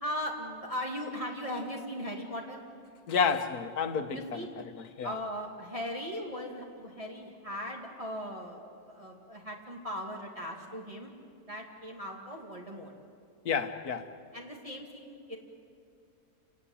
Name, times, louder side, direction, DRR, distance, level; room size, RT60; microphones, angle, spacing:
voice 1, 0.0-2.6 4.1-4.5 5.0-8.6 8.9-11.1 11.5-12.9 14.3-15.4, equal, 20° right, 2.4 m, -38 dB
voice 2, 3.1-4.4 5.0-5.1 13.5-14.1, left 6 dB, 80° left, 1.8 m, -29 dB
29.0 x 19.5 x 8.7 m
omnidirectional pair, 1.6 m